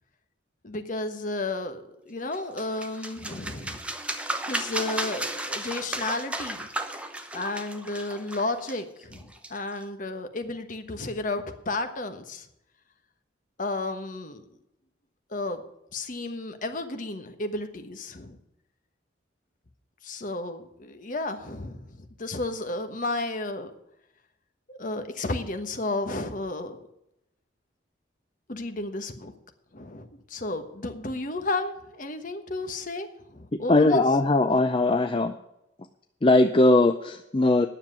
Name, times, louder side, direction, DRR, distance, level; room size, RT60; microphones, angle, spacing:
voice 1, 0.6-3.8 4.5-6.7 7.3-12.5 13.6-14.4 15.3-15.6 15.9-18.4 20.0-23.7 24.7-26.8 28.5-29.3 29.7-34.0, left 2 dB, 45° left, 7 dB, 1.2 m, -32 dB
sound 1, 2.3-9.8, right 1 dB, 5° right, 0.9 m, -34 dB
voice 2, 33.7-35.3 36.2-37.7, left 2 dB, 30° left, 7 dB, 0.5 m, -20 dB
9.9 x 7.3 x 9.3 m, 0.82 s
head